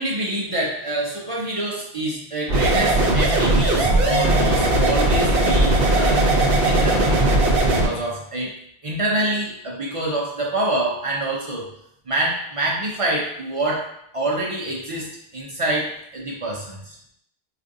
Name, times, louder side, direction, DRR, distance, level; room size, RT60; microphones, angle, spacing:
voice 1, 0.0-6.3 6.6-7.4 7.6-8.5 8.8-11.7 12.1-17.0, right 1 dB, 45° right, -3 dB, 0.4 m, -26 dB
sound 1, 2.5-7.9, right 2 dB, 65° right, 0.8 m, -18 dB
4.9 x 2.5 x 2.5 m, 0.73 s
omnidirectional pair, 1.1 m